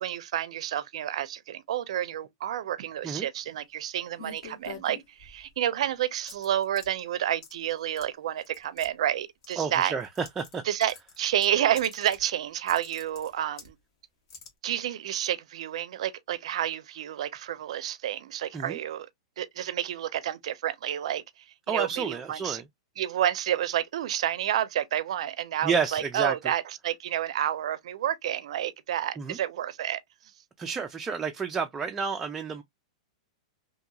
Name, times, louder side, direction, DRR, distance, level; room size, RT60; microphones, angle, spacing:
voice 1, 0.0-9.9 10.6-13.8 14.6-19.1 19.4-21.2 21.7-22.6 23.0-30.0, right 11 dB, 70° right, 0.4 m, -30 dB
sound 1, 4.2-5.5 6.3-6.9 7.4-7.7 8.0-8.1 8.4-8.9 9.4-10.6 10.8-12.2 12.5-13.7 14.3-14.5, left 5 dB, 60° left, 1.2 m, -46 dB
voice 2, 9.6-10.6 18.5-18.8 21.7-22.6 25.6-26.4 29.2-29.4 30.6-32.6, right 5 dB, 15° right, 0.3 m, -30 dB
2.8 x 2.8 x 2.3 m
supercardioid pair, 150°, 3 cm